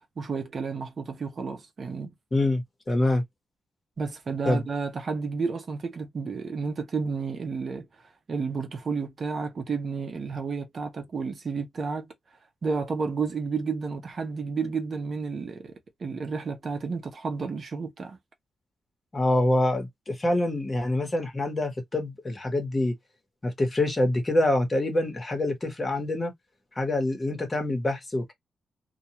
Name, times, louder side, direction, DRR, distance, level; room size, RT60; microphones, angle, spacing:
voice 1, 0.2-2.1 4.0-7.9 8.3-12.1 12.6-15.7 16.0-18.2, right 5 dB, 50° right, 0.7 m, -31 dB
voice 2, 2.3-2.6 2.9-3.2 4.5-4.6 19.1-22.9 23.4-26.3 26.8-28.3, left 1 dB, 25° left, 1.1 m, -25 dB
2.3 x 2.2 x 2.9 m
cardioid pair, 90°, 0 cm